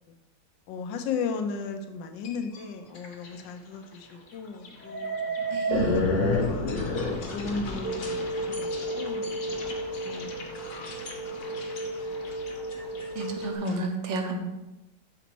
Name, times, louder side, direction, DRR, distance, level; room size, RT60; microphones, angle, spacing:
voice 1, 0.7-5.2 5.4-5.9 6.3-6.7 7.3-10.8, left 5 dB, 90° left, 6 dB, 1.4 m, -36 dB
sound 1, 2.2-2.6 3.0-3.3 3.7-3.8 4.6-13.7, left 2 dB, 50° left, 1.2 m, -31 dB
voice 2, 5.5-6.1 13.1-14.4, right 3 dB, 85° right, 3 dB, 1.6 m, -31 dB
sound 2, 7.8-13.6, right 1 dB, 65° right, 1.4 m, -34 dB
6.2 x 4.0 x 4.5 m, 1.0 s
omnidirectional pair, 2.0 m